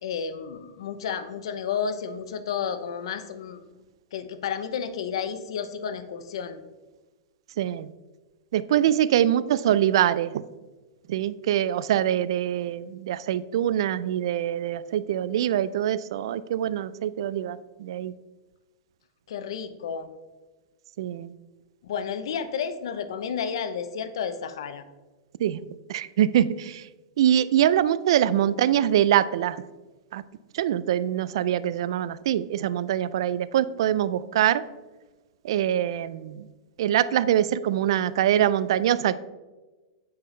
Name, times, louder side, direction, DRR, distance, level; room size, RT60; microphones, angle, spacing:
voice 1, 0.0-3.6 4.1-6.6 19.3-20.1 21.8-24.8, left 7 dB, 75° left, 11 dB, 0.7 m, -31 dB
voice 2, 7.6-7.9 8.5-10.3 11.1-18.1 21.0-21.3 25.4-25.6 25.9-26.8 27.2-29.6 30.1-30.2 30.5-34.6 35.4-36.5 36.8-39.2, right 11 dB, 70° right, 16 dB, 0.3 m, -24 dB
7.5 x 5.6 x 3.2 m, 1.2 s
hypercardioid pair, 140°, 3 cm